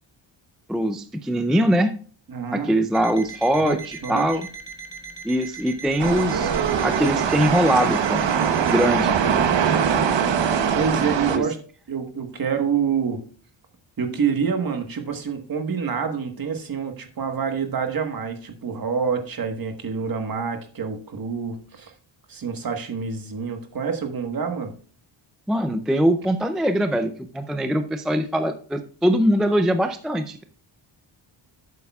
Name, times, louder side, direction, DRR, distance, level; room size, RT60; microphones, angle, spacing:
voice 1, 0.7-1.9 2.5-3.8 4.1-4.5 5.2-8.2 8.7-9.2 11.3-11.5 25.5-30.4, equal, ahead, 8 dB, 0.4 m, -22 dB
voice 2, 2.3-2.7 3.6-4.3 10.7-11.6 11.9-13.2 14.0-21.9 22.3-24.7, right 6 dB, 45° right, 5 dB, 1.4 m, -27 dB
Alarm, 2.9-9.0, right 4 dB, 15° left, 0.9 m, -39 dB
sound 1, 6.0-11.4, right 7 dB, 65° right, 1.0 m, -22 dB
11.5 x 8.3 x 2.3 m, 0.42 s
wide cardioid pair, 175°, 48 cm